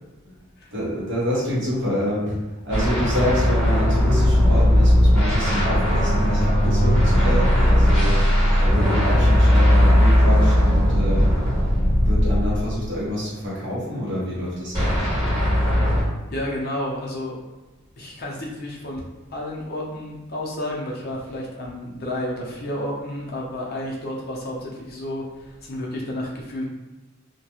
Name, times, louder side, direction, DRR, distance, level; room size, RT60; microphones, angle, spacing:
voice 1, 0.7-8.2 8.6-11.5 11.9-15.0, equal, 55° right, -6 dB, 0.9 m, -27 dB
sound 1, 2.7-13.0 14.7-16.0, equal, 15° right, 1.3 m, -18 dB
voice 2, 16.3-17.3 18.0-19.0 19.3-26.6, left 1 dB, 45° left, -3 dB, 0.6 m, -31 dB
2.3 x 2.2 x 2.9 m, 1.2 s
head